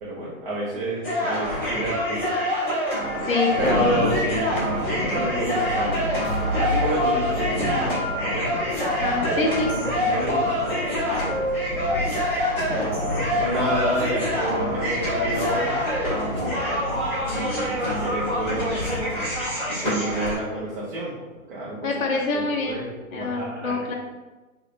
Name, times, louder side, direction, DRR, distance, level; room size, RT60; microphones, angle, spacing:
voice 1, 0.0-2.3 3.6-6.1 6.6-8.5 9.3-11.3 13.4-15.7 16.5-16.9 17.3-18.9 19.8-21.1 21.5-21.9 22.3-23.9, right 1 dB, 40° right, -8 dB, 0.9 m, -29 dB
sound 1, 1.0-20.4, equal, 5° left, 0.8 m, -26 dB
voice 2, 3.2-3.9 9.0-9.7 21.8-22.8 23.1-23.9, left 3 dB, 65° left, -2 dB, 0.7 m, -25 dB
Thunder, 3.5-19.5, left 1 dB, 35° left, 0.4 m, -33 dB
sound 2, 6.2-14.0 14.4-14.6 15.0-15.1, left 1 dB, 75° right, 1.3 m, -36 dB
3.1 x 2.8 x 2.5 m, 1.1 s
hypercardioid pair, 145°, 43 cm